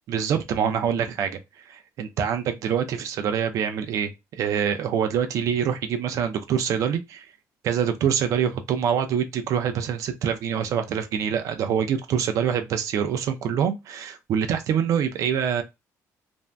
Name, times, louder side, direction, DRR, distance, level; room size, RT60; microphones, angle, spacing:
voice 1, 0.1-1.4 1.7-7.3 7.6-15.6, right 8 dB, 60° right, 0.4 m, -25 dB
2.5 x 2.1 x 3.3 m
cardioid pair, 175°, 6 cm